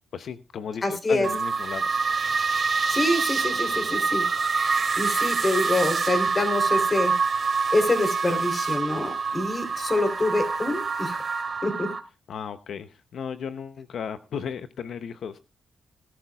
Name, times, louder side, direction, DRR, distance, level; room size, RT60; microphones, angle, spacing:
voice 1, 0.1-1.9 12.3-15.4, left 7 dB, 70° left, 11 dB, 0.7 m, -35 dB
voice 2, 0.8-1.3 2.9-4.2 5.0-7.1 7.7-11.2 11.6-11.9, left 2 dB, 30° left, 8 dB, 3.3 m, -26 dB
sound 1, 1.2-12.0, right 5 dB, 40° right, 2.5 m, -26 dB
18.0 x 13.5 x 2.3 m, 0.28 s
cardioid pair, 100°, 0 cm